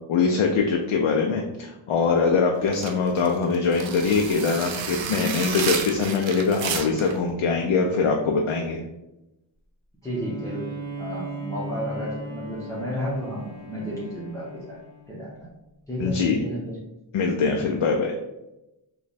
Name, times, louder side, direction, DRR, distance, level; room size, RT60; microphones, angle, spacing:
voice 1, 0.1-8.8 16.0-16.4 17.1-18.1, left 4 dB, 85° left, 1 dB, 0.5 m, -23 dB
sound 1, 2.7-7.2, right 6 dB, 70° right, 0.6 m, -31 dB
voice 2, 10.0-14.8 15.1-15.5 15.9-16.8, equal, 5° left, -7 dB, 0.8 m, -32 dB
Bowed string instrument, 10.0-15.5, right 1 dB, 10° right, 1.5 m, -38 dB
3.1 x 2.3 x 4.0 m, 0.94 s
wide cardioid pair, 115°, 48 cm